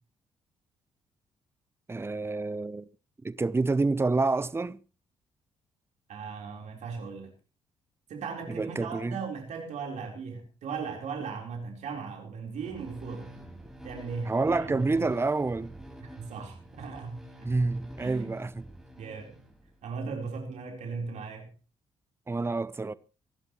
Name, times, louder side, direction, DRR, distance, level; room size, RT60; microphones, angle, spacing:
voice 1, 1.9-2.9 3.2-4.8 8.5-9.2 14.2-15.8 17.4-18.6 22.3-22.9, right 3 dB, 20° right, 0.8 m, -28 dB
voice 2, 6.1-7.3 8.1-13.3 13.8-15.1 16.0-17.2 18.0-18.3 19.0-19.3 19.8-21.5, right 5 dB, 65° right, 4.1 m, -37 dB
sound 1, 12.5-20.0, right 1 dB, 5° right, 5.1 m, -48 dB
26.0 x 11.5 x 3.1 m
hypercardioid pair, 45°, 13 cm